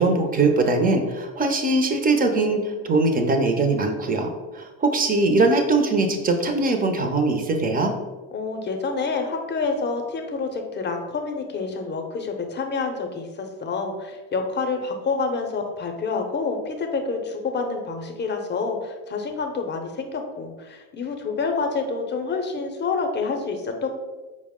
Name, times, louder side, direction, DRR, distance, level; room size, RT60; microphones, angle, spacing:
voice 1, 0.0-7.9, right 3 dB, 25° right, 5 dB, 0.5 m, -21 dB
voice 2, 8.3-23.9, left 4 dB, 30° left, 4 dB, 0.6 m, -28 dB
4.5 x 2.1 x 3.5 m, 1.3 s
supercardioid pair, 100°, 37 cm